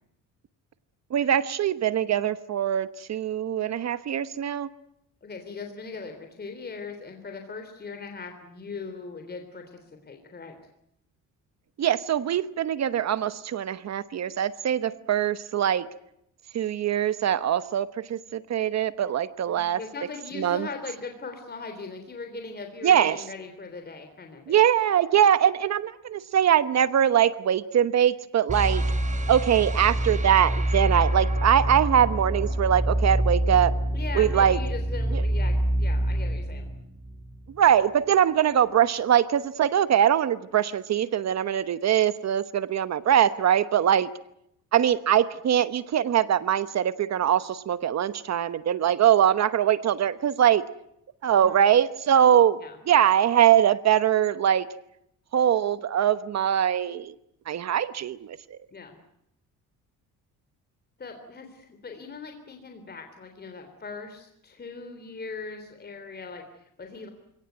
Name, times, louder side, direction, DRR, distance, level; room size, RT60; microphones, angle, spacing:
voice 1, 1.1-4.7 11.8-15.9 16.5-19.8 20.4-20.7 22.8-23.2 24.5-28.8 29.3-33.7 34.1-34.6 35.1-35.2 37.5-44.1 44.7-50.6 51.2-52.6 52.9-54.7 55.3-57.1 57.5-58.6, right 10 dB, 55° right, 14 dB, 1.1 m, -22 dB
voice 2, 5.2-10.5 19.5-24.6 33.9-36.7 51.3-51.6 52.6-52.8 58.7-59.0 61.0-67.1, left 4 dB, 30° left, 5 dB, 3.5 m, -40 dB
sound 1, 28.5-37.6, right 1 dB, 20° right, 3.5 m, -26 dB
29.5 x 18.0 x 9.4 m, 0.77 s
cardioid pair, 115°, 32 cm